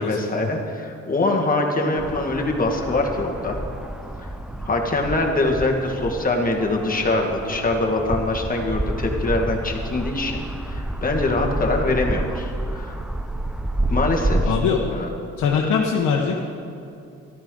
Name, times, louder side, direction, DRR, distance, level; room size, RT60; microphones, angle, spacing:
voice 1, 0.0-3.6 4.6-12.9 13.9-14.5 14.9-15.1, left 2 dB, 30° left, 1 dB, 1.7 m, -23 dB
sound 1, 2.0-14.5, right 1 dB, 5° right, 0.4 m, -29 dB
voice 2, 14.4-14.9 15.4-16.4, left 6 dB, 75° left, -1 dB, 1.1 m, -22 dB
13.5 x 12.0 x 3.8 m, 2.6 s
cardioid pair, 90°, 30 cm